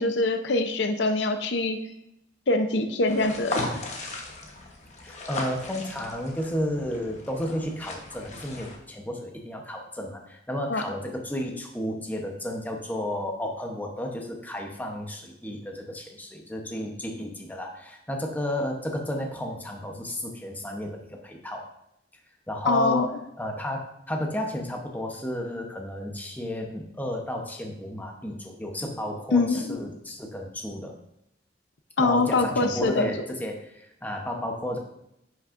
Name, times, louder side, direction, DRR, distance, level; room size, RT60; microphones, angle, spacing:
voice 1, 0.0-1.8 2.5-3.7 10.7-10.8 22.7-23.1 29.3-29.8 32.0-33.1, left 3 dB, 80° left, 7 dB, 0.7 m, -24 dB
sound 1, 3.1-8.8, left 2 dB, 40° left, 1.1 m, -36 dB
voice 2, 5.0-21.7 22.5-23.1 23.4-30.9 32.0-34.8, equal, 10° left, 2 dB, 0.9 m, -32 dB
9.4 x 6.3 x 2.6 m, 0.81 s
head